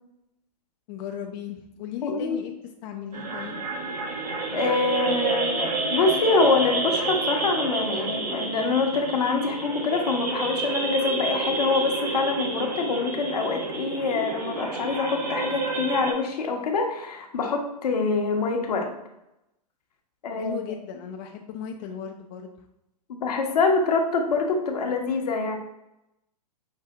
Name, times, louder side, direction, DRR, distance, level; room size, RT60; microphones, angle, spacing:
voice 1, 0.9-2.5 2.8-3.6 20.4-22.5, left 8 dB, 35° left, 2 dB, 0.5 m, -36 dB
voice 2, 2.0-2.4 4.5-18.9 20.2-20.5 23.2-25.5, left 4 dB, 65° left, 3 dB, 1.0 m, -25 dB
sound 1, 3.1-16.1, right 3 dB, 70° right, 1.4 m, -29 dB
5.7 x 2.7 x 3.4 m, 0.88 s
hypercardioid pair, 120°, 21 cm